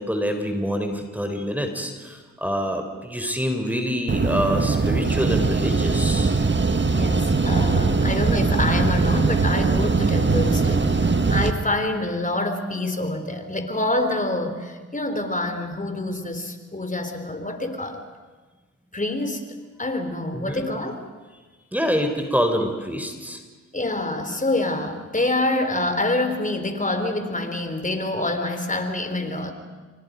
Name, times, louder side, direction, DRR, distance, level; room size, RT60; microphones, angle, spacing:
voice 1, 0.0-6.3 20.3-20.6 21.7-23.4, equal, 5° right, 5 dB, 3.9 m, -26 dB
sound 1, 4.1-11.5, right 4 dB, 35° right, 1.7 m, -21 dB
voice 2, 6.8-18.0 18.9-19.4 19.8-21.1 23.7-29.5, left 2 dB, 25° left, 7 dB, 3.9 m, -26 dB
29.0 x 24.0 x 5.3 m, 1.4 s
supercardioid pair, 40°, 31 cm